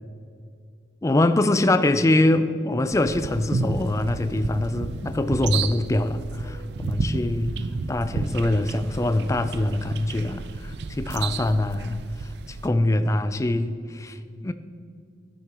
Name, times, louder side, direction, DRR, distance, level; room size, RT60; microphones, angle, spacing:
voice 1, 1.0-7.6 7.9-14.5, left 1 dB, 20° left, 11 dB, 0.4 m, -24 dB
sound 1, 2.9-12.7, right 3 dB, 70° right, 0.4 m, -31 dB
13.0 x 9.1 x 3.0 m, 2.3 s
head